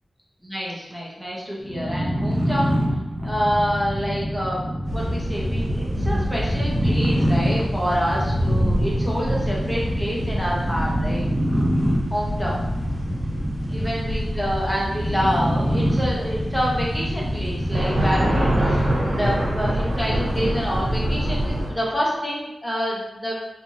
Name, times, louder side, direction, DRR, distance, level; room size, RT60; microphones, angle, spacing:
voice 1, 0.4-2.8 3.2-11.3 12.1-12.6 13.7-23.3, equal, 5° left, -5 dB, 0.8 m, -27 dB
sound 1, 1.6-18.9, equal, 25° right, 0.6 m, -26 dB
sound 2, 4.8-21.7, equal, 90° right, 1.1 m, -26 dB
3.1 x 2.5 x 2.6 m, 0.94 s
wide cardioid pair, 85°, 0 cm